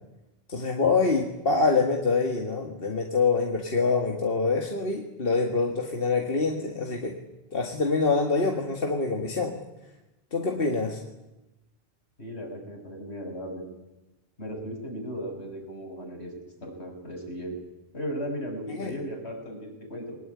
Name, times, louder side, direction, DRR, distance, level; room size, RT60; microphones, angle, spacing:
voice 1, 0.5-7.2 7.5-9.5 10.3-11.0 18.7-18.9, left 4 dB, 60° left, 2 dB, 2.1 m, -25 dB
voice 2, 12.2-13.6 14.4-16.3 16.6-17.6 17.9-20.2, equal, 85° left, 1 dB, 6.8 m, -36 dB
22.0 x 20.0 x 9.7 m, 1.0 s
omnidirectional pair, 1.1 m